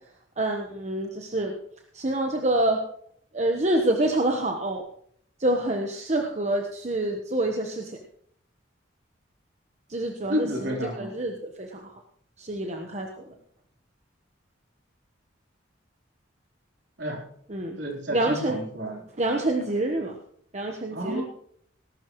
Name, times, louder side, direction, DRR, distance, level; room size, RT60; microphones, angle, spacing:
voice 1, 0.4-1.5 1.9-2.8 3.3-4.8 5.4-8.0 9.9-12.0 12.4-13.3 17.5-17.8 18.1-18.6 19.2-20.1 20.5-21.2, right 1 dB, 35° right, 2 dB, 1.2 m, -27 dB
voice 2, 10.3-11.2 17.0-17.2 17.8-19.0 20.9-21.2, equal, 60° right, 0 dB, 3.8 m, -31 dB
18.5 x 12.0 x 3.1 m, 0.63 s
head